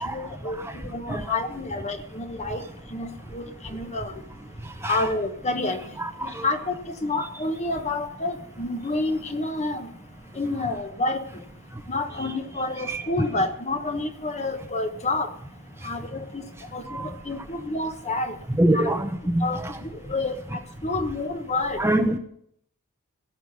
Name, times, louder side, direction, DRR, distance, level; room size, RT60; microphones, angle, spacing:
voice 1, 0.0-2.6 2.9-4.1 4.9-5.8 6.2-9.9 10.4-11.2 11.9-15.3 15.8-16.4 16.7-18.3 18.7-18.9 19.4-20.4 20.8-21.8, left 2 dB, 30° left, 7 dB, 1.3 m, -29 dB
voice 2, 1.1-1.4 4.8-5.1 6.0-6.4 12.9-13.0 16.9-17.1 18.6-19.7 21.8-22.2, right 1 dB, 10° right, 6 dB, 0.8 m, -25 dB
17.0 x 5.9 x 9.4 m, 0.68 s
head